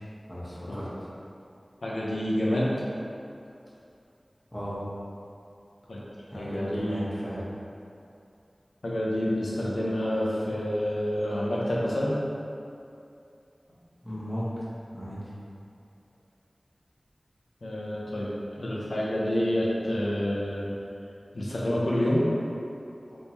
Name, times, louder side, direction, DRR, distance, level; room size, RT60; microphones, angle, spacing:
voice 1, 0.3-0.9 4.5-4.8 6.3-7.4 13.7-14.6 14.9-15.3, equal, 20° left, -9 dB, 1.2 m, -35 dB
voice 2, 1.8-2.7 5.9-6.0 6.3-7.1 8.8-12.1 17.6-20.8 21.3-22.2, equal, 90° left, -6 dB, 0.6 m, -28 dB
3.6 x 3.1 x 2.8 m, 2.6 s
wide cardioid pair, 40°, 0 cm